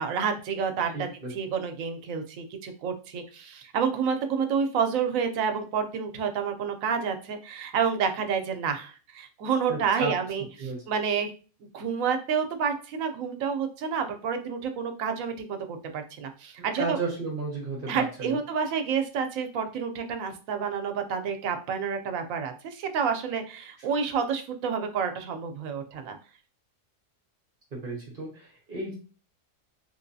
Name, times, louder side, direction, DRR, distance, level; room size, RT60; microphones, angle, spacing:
voice 1, 0.0-11.3 11.7-17.0 17.9-26.2, right 6 dB, 85° right, 6 dB, 1.0 m, -29 dB
voice 2, 0.9-1.3 9.7-10.1 10.6-10.8 16.8-18.4 27.7-28.9, right 3 dB, 45° right, -1 dB, 1.0 m, -33 dB
3.3 x 2.9 x 2.6 m, 0.36 s
omnidirectional pair, 1.4 m